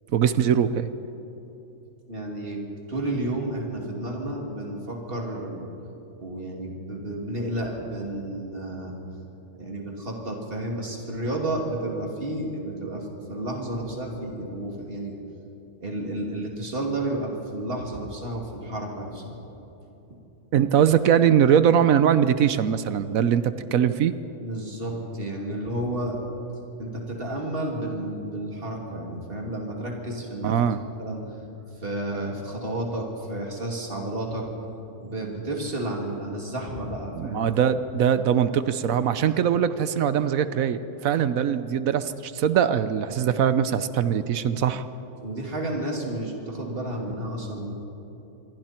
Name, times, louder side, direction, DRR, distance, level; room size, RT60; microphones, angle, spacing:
voice 1, 0.1-0.9 20.5-24.1 30.4-30.8 37.2-44.8, right 8 dB, 65° right, 12 dB, 1.1 m, -21 dB
voice 2, 2.1-2.6 2.9-5.7 6.2-8.9 9.6-15.2 15.8-19.4 24.4-26.2 26.5-30.7 31.0-31.5 31.8-34.5 35.0-37.5 45.2-47.7, right 1 dB, 35° right, 0 dB, 3.0 m, -31 dB
27.0 x 22.0 x 4.4 m, 3.0 s
omnidirectional pair, 1.6 m